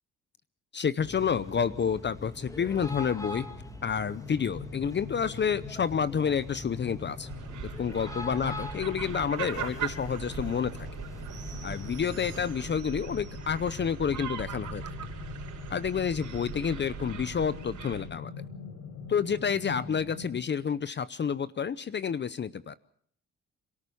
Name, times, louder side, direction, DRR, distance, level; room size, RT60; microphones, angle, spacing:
voice 1, 0.7-3.5 3.8-7.3 7.8-10.9 11.6-14.8 15.7-18.3 19.1-22.8, left 7 dB, 35° left, 16 dB, 0.7 m, -29 dB
sound 1, 1.0-12.8, left 1 dB, 10° left, 1.9 m, -43 dB
sound 2, 2.7-20.4, left 6 dB, 70° left, 4.9 m, -44 dB
sound 3, 7.3-18.0, right 10 dB, 85° right, 5.3 m, -40 dB
27.0 x 13.5 x 6.9 m, 0.64 s
cardioid pair, 90°, 30 cm